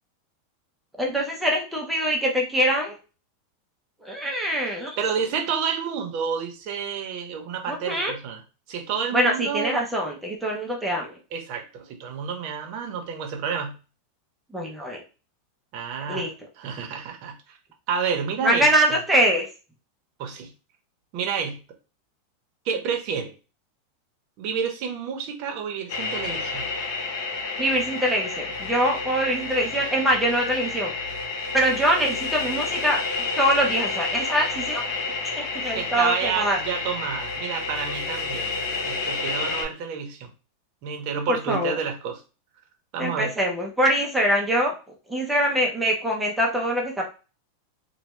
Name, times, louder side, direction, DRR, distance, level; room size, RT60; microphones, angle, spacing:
voice 1, 1.0-3.0 4.0-5.0 7.7-8.2 9.1-11.1 14.5-15.0 16.1-16.3 18.4-19.4 27.6-30.9 31.5-34.9 35.4-36.6 41.3-41.7 43.0-44.7 45.1-47.1, right 1 dB, 5° right, -1 dB, 0.6 m, -23 dB
voice 2, 5.0-8.4 8.7-9.8 11.3-13.8 15.7-17.6 17.9-19.0 20.2-20.5 21.1-21.6 22.6-23.3 24.4-26.7 35.7-38.5 38.8-40.3 40.8-42.2 42.9-43.3, right 6 dB, 45° right, 4 dB, 0.8 m, -29 dB
sound 1, 25.9-39.6, left 4 dB, 70° left, 0.9 m, -30 dB
3.2 x 2.2 x 3.0 m, 0.33 s
supercardioid pair, 150°, 0 cm